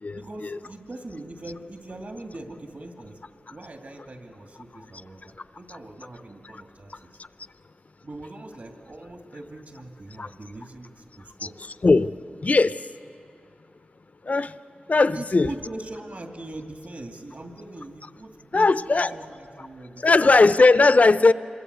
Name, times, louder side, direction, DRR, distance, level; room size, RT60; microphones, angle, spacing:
voice 1, 0.1-3.2 3.5-7.2 8.0-11.6 15.1-20.4, right 2 dB, 55° right, 3 dB, 2.5 m, -41 dB
voice 2, 12.4-12.7 14.3-14.5 14.9-15.5 18.5-19.1 20.0-21.3, left 3 dB, 50° left, 13 dB, 0.6 m, -18 dB
27.0 x 22.5 x 8.2 m, 2.5 s
wide cardioid pair, 75°, 3 cm